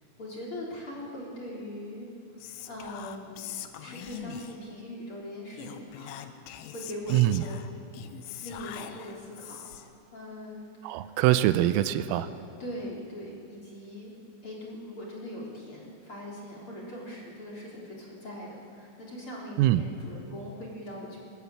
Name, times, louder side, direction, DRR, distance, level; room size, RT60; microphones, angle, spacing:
voice 1, 0.2-2.1 2.7-3.5 3.8-6.2 6.7-7.7 8.4-9.6 10.1-11.1 12.6-14.1 14.4-21.2, left 1 dB, 30° left, -3 dB, 4.0 m, -41 dB
Whispering, 2.4-4.7 5.5-10.0, left 11 dB, 80° left, 3.4 m, -43 dB
voice 2, 7.1-7.5 10.8-12.3 19.6-19.8, right 14 dB, 85° right, 12 dB, 3.4 m, -23 dB
23.0 x 21.0 x 8.7 m, 2.6 s
omnidirectional pair, 6.0 m